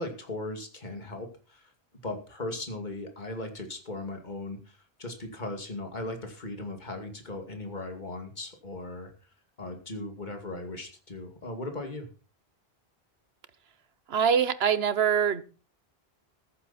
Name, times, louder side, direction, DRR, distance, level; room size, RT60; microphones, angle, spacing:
voice 1, 0.0-1.7 2.0-9.1 9.6-12.1, left 2 dB, 45° left, 2.6 m, -38 dB
voice 2, 14.1-15.4, right 7 dB, 75° right, 1.2 m, -24 dB
14.5 x 11.5 x 4.3 m
omnidirectional pair, 1.1 m